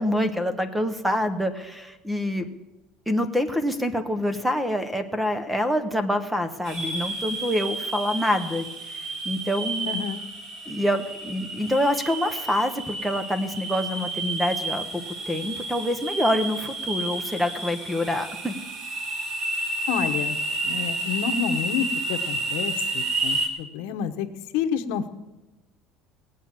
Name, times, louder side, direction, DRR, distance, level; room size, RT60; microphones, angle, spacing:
voice 1, 0.0-2.5 3.1-9.9 10.7-18.5, left 1 dB, 5° right, 10 dB, 0.8 m, -26 dB
sound 1, 6.7-23.5, right 2 dB, 35° right, 2.1 m, -31 dB
voice 2, 9.9-10.2 19.9-20.4 20.6-24.3 24.5-25.1, left 8 dB, 80° left, 9 dB, 1.0 m, -29 dB
18.0 x 8.5 x 7.4 m, 1.0 s
cardioid pair, 175°, 0 cm